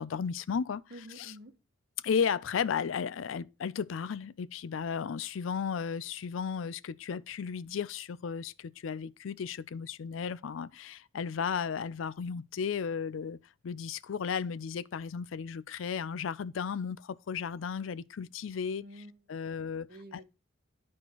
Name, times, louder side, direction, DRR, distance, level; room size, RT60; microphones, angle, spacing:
voice 1, 0.0-0.8 2.0-13.4 13.6-18.8 19.3-20.2, left 6 dB, 85° left, 0.4 m, -34 dB
voice 2, 0.9-1.6 18.8-19.5 19.9-20.2, right 1 dB, 50° right, 1.1 m, -50 dB
12.0 x 4.3 x 2.9 m
head